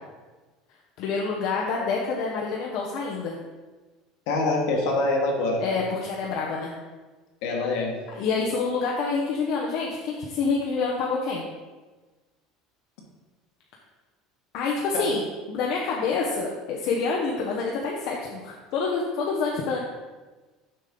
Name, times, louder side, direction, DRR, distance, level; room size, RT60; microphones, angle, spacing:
voice 1, 1.0-3.4 5.6-6.7 8.2-11.4 14.5-15.2 15.5-19.8, left 4 dB, 60° left, -2 dB, 0.9 m, -27 dB
voice 2, 4.3-5.6 7.4-8.0 14.9-15.1, left 2 dB, 75° left, 0 dB, 1.6 m, -25 dB
6.7 x 5.2 x 3.8 m, 1.3 s
cardioid pair, 145°, 0 cm